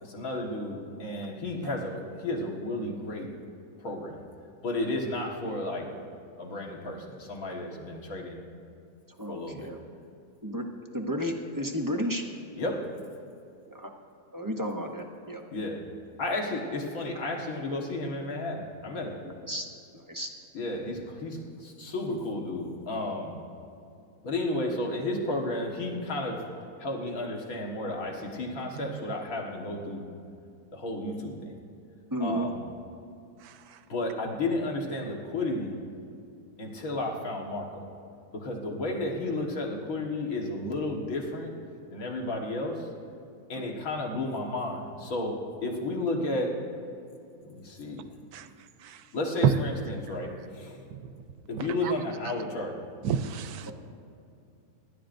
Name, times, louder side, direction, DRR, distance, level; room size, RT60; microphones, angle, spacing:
voice 1, 0.0-3.3 3.8-4.2 4.6-5.9 6.4-8.4 9.3-9.7 12.6-12.9 15.5-15.9 16.2-19.3 20.5-23.3 24.2-26.5 26.8-30.0 30.7-31.5 32.2-32.6 33.9-35.8 36.6-37.9 38.3-41.5 41.9-42.9 43.5-46.7 47.4-48.1 49.1-50.8 51.5-52.8, left 2 dB, 65° left, -1 dB, 2.0 m, -32 dB
voice 2, 9.2-9.8 10.4-10.6 10.9-12.2 13.7-13.9 14.3-15.4 19.2-19.7 19.9-20.3 32.1-32.5 43.7-43.8 53.7-53.8, equal, 20° right, 3 dB, 0.5 m, -32 dB
voice 3, 33.4-33.8 48.3-48.5 48.8-49.0 49.4-49.5 50.9-51.0 51.6-51.9 53.0-53.7, right 9 dB, 80° right, 10 dB, 1.1 m, -29 dB
25.5 x 11.5 x 2.6 m, 2.5 s
omnidirectional pair, 1.7 m